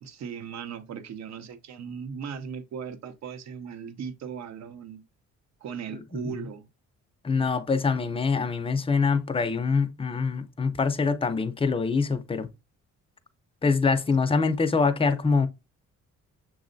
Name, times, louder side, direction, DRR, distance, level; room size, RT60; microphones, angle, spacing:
voice 1, 0.0-5.0 5.6-6.7, right 7 dB, 60° right, 0.7 m, -38 dB
voice 2, 7.2-12.5 13.6-15.5, left 4 dB, 20° left, 0.5 m, -24 dB
6.5 x 3.2 x 2.5 m
cardioid pair, 90°, 30 cm